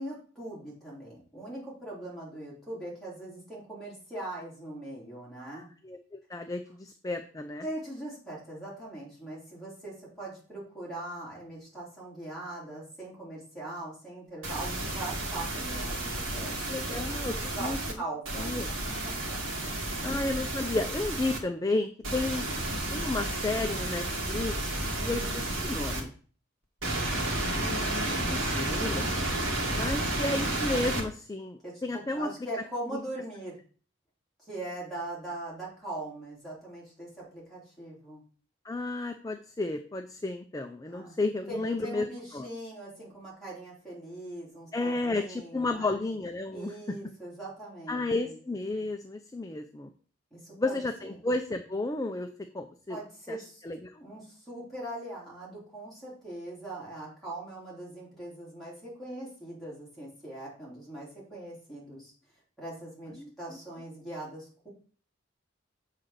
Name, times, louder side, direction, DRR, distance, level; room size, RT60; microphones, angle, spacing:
voice 1, 0.0-5.7 7.6-16.6 16.9-17.1 17.6-20.3 24.9-25.4 31.6-31.8 32.1-33.6 34.4-38.2 40.9-41.2 41.5-46.0 46.5-48.4 50.3-51.1 52.9-53.6 54.0-62.1 62.6-64.7, right 1 dB, ahead, -7 dB, 3.4 m, -41 dB
voice 2, 5.5-7.6 16.2-17.3 17.6-17.8 18.4-18.7 20.0-22.4 22.9-24.5 25.0-26.1 27.5-29.3 29.7-32.3 38.6-42.1 42.3-42.5 44.7-47.0 47.9-49.9 50.6-52.3 52.5-53.0 53.3-53.4 53.6-54.0 63.2-63.6, left 2 dB, 15° left, 6 dB, 0.4 m, -32 dB
sound 1, 14.4-17.9 18.2-21.4 22.0-26.0 26.8-31.0, right 1 dB, 85° right, 1.9 m, -32 dB
7.4 x 3.8 x 6.4 m, 0.42 s
head